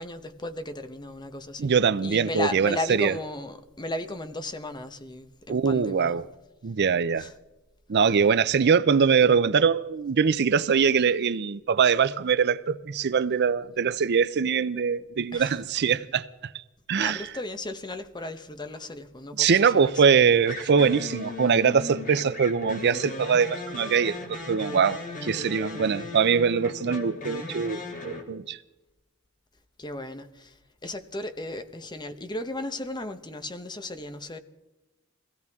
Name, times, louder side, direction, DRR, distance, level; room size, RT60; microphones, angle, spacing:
voice 1, 0.0-1.8 2.0-6.2 7.1-7.3 8.1-8.3 15.3-15.6 16.9-20.5 29.8-34.4, left 2 dB, 20° left, 1.0 m, -36 dB
voice 2, 1.6-3.1 5.5-6.2 6.6-7.3 7.9-16.5 16.9-17.2 19.4-28.6, right 6 dB, 50° right, 0.5 m, -23 dB
sound 1, 19.6-19.9 20.4-28.2, left 3 dB, 40° left, 2.8 m, -37 dB
23.0 x 16.5 x 3.6 m
head